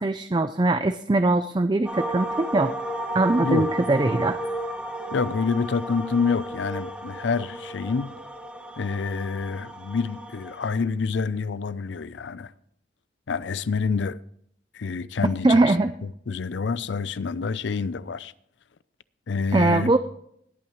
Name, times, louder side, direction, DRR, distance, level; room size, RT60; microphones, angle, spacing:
voice 1, 0.0-2.7 3.1-4.4 15.4-15.9 19.5-20.0, right 2 dB, 25° right, 0.4 m, -21 dB
sound 1, 1.9-10.8, right 1 dB, 5° right, 1.1 m, -33 dB
voice 2, 3.4-3.7 5.1-8.1 8.8-12.5 13.3-14.2 14.7-15.7 16.0-18.3 19.3-19.9, left 5 dB, 75° left, 0.5 m, -27 dB
19.5 x 8.7 x 3.1 m
head